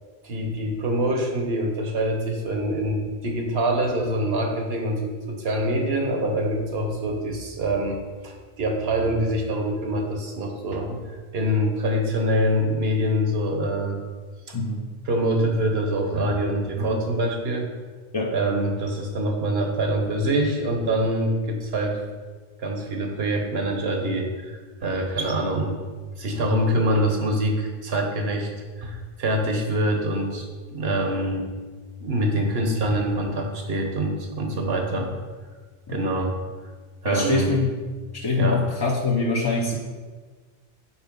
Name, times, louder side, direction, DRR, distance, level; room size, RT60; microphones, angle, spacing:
voice 1, 0.2-14.0 14.5-14.6 15.1-17.7 18.3-22.0 22.6-25.8 26.2-28.5 28.8-30.4 30.7-31.5 32.0-35.1 35.9-36.3 37.0-37.5 38.4-38.6, right 1 dB, 75° right, 3 dB, 1.2 m, -25 dB
voice 2, 14.5-14.9 18.1-18.4 34.9-35.0 35.9-36.0 37.1-37.7 38.1-39.8, left 3 dB, 30° left, -2 dB, 0.5 m, -24 dB
5.5 x 4.5 x 5.2 m, 1.5 s
omnidirectional pair, 1.0 m